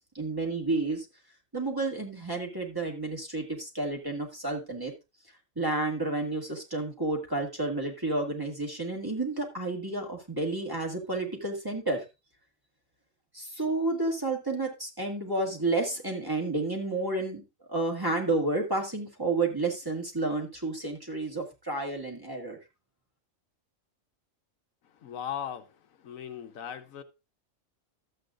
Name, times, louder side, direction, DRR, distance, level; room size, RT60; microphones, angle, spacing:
voice 1, 0.1-1.0 1.5-4.9 5.5-12.0 13.3-17.4 17.7-22.6, right 2 dB, 15° right, 1.8 m, -30 dB
voice 2, 25.0-25.7 26.0-27.0, left 9 dB, 80° left, 1.2 m, -37 dB
12.5 x 8.0 x 2.5 m
omnidirectional pair, 1.4 m